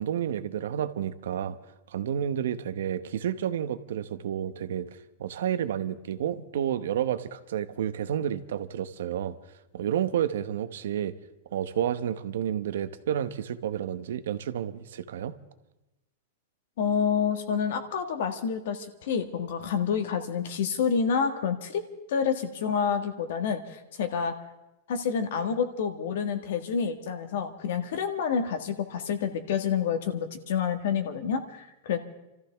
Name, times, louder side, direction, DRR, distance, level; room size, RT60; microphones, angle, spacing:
voice 1, 0.0-1.6 1.9-9.4 9.7-11.1 11.5-15.3, right 9 dB, 80° right, 12 dB, 1.0 m, -30 dB
voice 2, 16.8-21.8 22.1-24.3 24.9-32.0, left 6 dB, 65° left, 7 dB, 1.6 m, -28 dB
28.5 x 14.0 x 3.5 m, 0.94 s
supercardioid pair, 170°, 0 cm